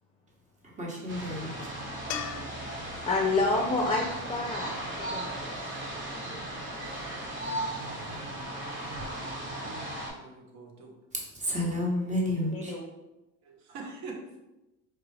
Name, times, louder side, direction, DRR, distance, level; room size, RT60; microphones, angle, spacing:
voice 1, 0.6-1.7 11.3-12.7, left 1 dB, 25° right, -2 dB, 1.2 m, -31 dB
sound 1, 1.1-10.1, right 1 dB, 40° right, 1.4 m, -37 dB
sound 2, 2.1-5.3 8.6-8.7, left 9 dB, 65° left, 0.5 m, -42 dB
voice 2, 3.0-4.7 5.0-5.3 12.5-12.9, left 3 dB, 15° left, 0 dB, 0.5 m, -28 dB
voice 3, 7.4-11.0 13.4-14.4, right 3 dB, 60° right, 1 dB, 1.0 m, -46 dB
4.5 x 2.4 x 3.3 m, 0.96 s
cardioid pair, 110°, 31 cm